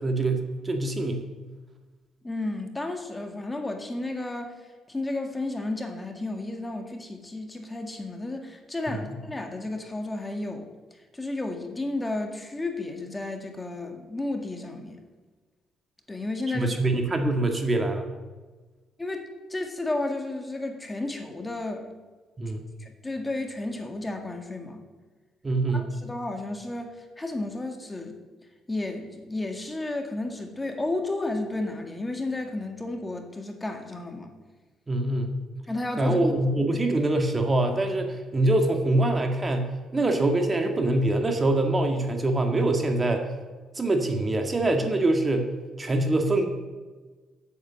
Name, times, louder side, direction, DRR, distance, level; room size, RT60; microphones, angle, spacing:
voice 1, 0.0-1.2 8.9-9.0 16.5-18.1 22.4-22.6 25.4-25.9 34.9-35.4 36.0-43.3 43.8-45.5 45.8-46.5, right 2 dB, 30° right, 4 dB, 1.8 m, -24 dB
voice 2, 2.2-4.6 4.9-10.7 11.1-15.1 16.1-16.8 19.0-21.9 22.8-24.8 25.7-28.2 28.7-34.3 35.7-36.3, left 2 dB, 20° left, 4 dB, 1.9 m, -32 dB
8.6 x 8.3 x 7.3 m, 1.3 s
supercardioid pair, 65°, 0 cm